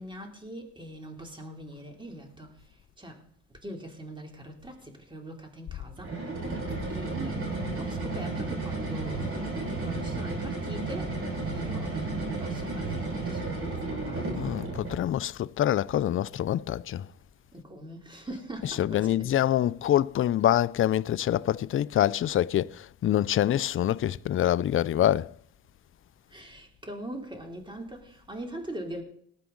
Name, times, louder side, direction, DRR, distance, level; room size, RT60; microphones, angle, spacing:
voice 1, 0.0-3.2 3.6-6.2 6.9-14.7 17.5-19.3 26.3-29.0, right 1 dB, 15° right, 2.9 m, -42 dB
sound 1, 6.0-15.1, right 3 dB, 45° right, 5.6 m, -33 dB
voice 2, 14.4-17.1 18.6-25.3, left 11 dB, 45° left, 0.5 m, -25 dB
19.0 x 8.2 x 3.8 m
cardioid pair, 90°, 30 cm